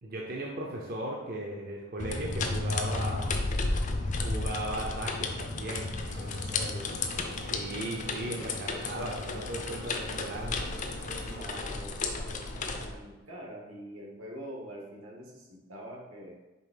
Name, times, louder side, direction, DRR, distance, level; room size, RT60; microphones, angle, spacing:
voice 1, 0.0-3.4 4.2-5.9 7.5-10.7, right 1 dB, 45° right, -1 dB, 0.6 m, -37 dB
sound 1, 2.0-12.9, left 3 dB, 35° left, 0.5 m, -33 dB
sound 2, 6.1-11.4, equal, 60° right, 1.2 m, -46 dB
voice 2, 6.1-7.5 11.2-16.3, equal, 80° right, -2 dB, 1.6 m, -45 dB
5.3 x 3.5 x 5.0 m, 1.1 s
head